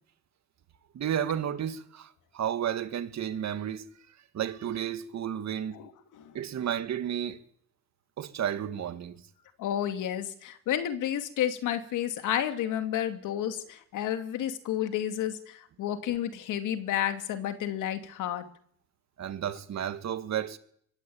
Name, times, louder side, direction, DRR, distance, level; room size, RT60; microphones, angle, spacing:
voice 1, 0.9-3.9 4.3-5.8 6.3-7.4 8.2-9.2 19.2-20.6, right 9 dB, 65° right, 2.4 m, -32 dB
voice 2, 9.6-18.5, left 10 dB, 85° left, 2.6 m, -31 dB
24.5 x 23.0 x 8.8 m
cardioid pair, 90°, 30 cm